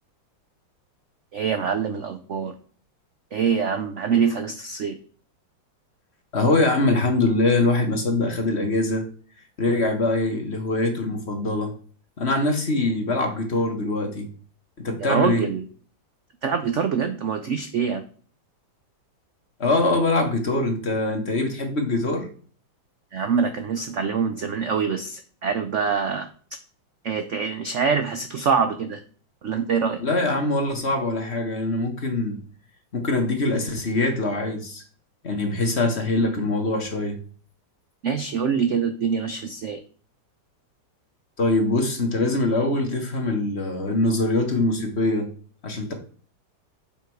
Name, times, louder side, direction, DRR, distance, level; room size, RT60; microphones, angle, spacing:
voice 1, 1.3-2.5 3.3-4.9 15.1-15.6 16.4-18.0 23.1-26.3 27.0-29.0 29.4-30.0 38.0-39.8, right 6 dB, 70° right, 8 dB, 0.7 m, -24 dB
voice 2, 6.3-9.1 9.6-11.7 12.2-14.3 14.8-15.5 19.6-22.3 30.0-32.4 32.9-34.8 35.2-37.2 41.4-45.3 45.6-45.9, left 2 dB, 35° left, 3 dB, 1.5 m, -23 dB
7.2 x 5.8 x 4.7 m, 0.43 s
omnidirectional pair, 2.1 m